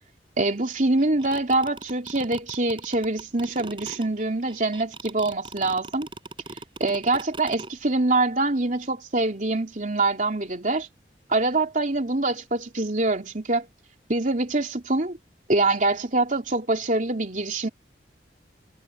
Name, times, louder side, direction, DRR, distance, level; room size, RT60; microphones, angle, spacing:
voice 1, 0.4-6.1 6.8-10.9 11.3-13.7 14.1-15.2 15.5-17.7, right 2 dB, 45° right, 3.1 m, -24 dB
sound 1, 1.0-7.7, right 3 dB, 30° right, 6.4 m, -39 dB
head